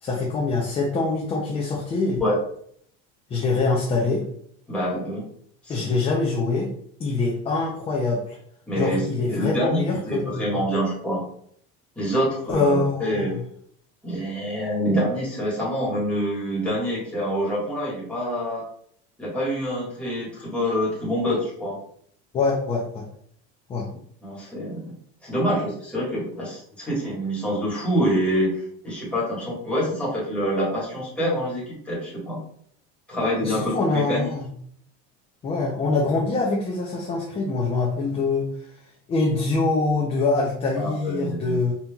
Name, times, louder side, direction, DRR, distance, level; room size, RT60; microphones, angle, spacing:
voice 1, 0.0-2.2 3.3-4.2 5.7-6.7 7.0-8.4 8.7-10.6 12.5-13.4 22.3-23.0 23.7-23.9 33.4-34.5 35.4-38.5 39.1-41.7, left 3 dB, 20° left, -3 dB, 0.5 m, -24 dB
voice 2, 4.7-5.3 5.6-5.9 8.7-11.2 11.9-13.4 14.0-18.7 19.2-21.8 24.2-24.9 25.2-32.4 33.1-34.3 40.8-41.6, equal, 5° left, -7 dB, 1.5 m, -26 dB
5.3 x 2.9 x 2.3 m, 0.65 s
cardioid pair, 165°, 29 cm